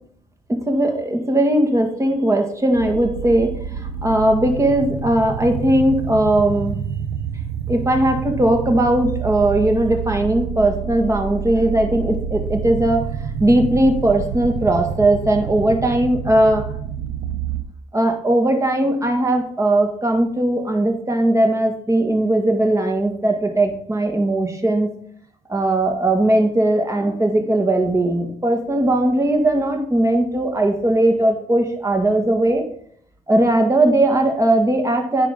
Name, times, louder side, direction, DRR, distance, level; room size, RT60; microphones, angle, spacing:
voice 1, 0.5-3.5 4.0-6.8 7.7-13.1 13.4-16.7 17.9-24.9 25.5-32.6 33.3-35.3, right 1 dB, 20° right, 4 dB, 1.6 m, -18 dB
sound 1, 2.7-17.6, right 8 dB, 85° right, 0.7 m, -28 dB
9.0 x 5.2 x 3.6 m, 0.63 s
supercardioid pair, 65°, 14 cm